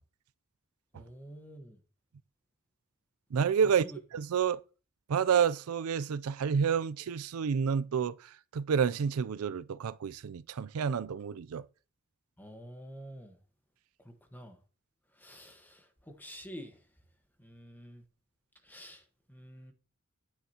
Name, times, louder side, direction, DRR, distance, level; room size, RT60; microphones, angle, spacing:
voice 1, 0.9-1.8 3.8-4.0 12.4-13.3 14.0-14.6 15.2-16.8 17.4-18.0 18.6-19.0 19.3-19.7, equal, 10° left, 1.3 m, -48 dB
voice 2, 3.3-3.8 4.1-4.6 5.1-8.1 8.5-11.6, right 7 dB, 85° right, 0.4 m, -29 dB
11.0 x 9.5 x 2.9 m
head